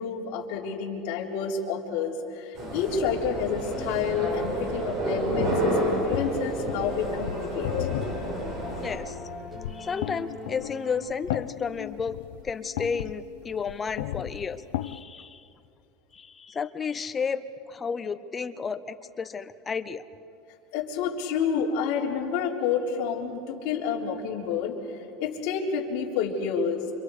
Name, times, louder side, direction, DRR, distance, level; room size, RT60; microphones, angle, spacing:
voice 1, 0.0-7.9 20.7-24.7 25.2-26.9, left 6 dB, 55° left, -2 dB, 3.9 m, -29 dB
sound 1, 2.6-9.0, right 1 dB, 35° right, 5.3 m, -30 dB
sound 2, 5.4-15.0, left 14 dB, 85° left, 0.6 m, -35 dB
sound 3, 6.0-11.0, left 2 dB, 5° right, 6.8 m, -42 dB
voice 2, 8.8-9.2 9.7-12.2 12.4-15.5 16.1-20.0, left 5 dB, 15° left, 11 dB, 0.7 m, -32 dB
30.0 x 26.5 x 5.0 m, 2.7 s
supercardioid pair, 170°, 0 cm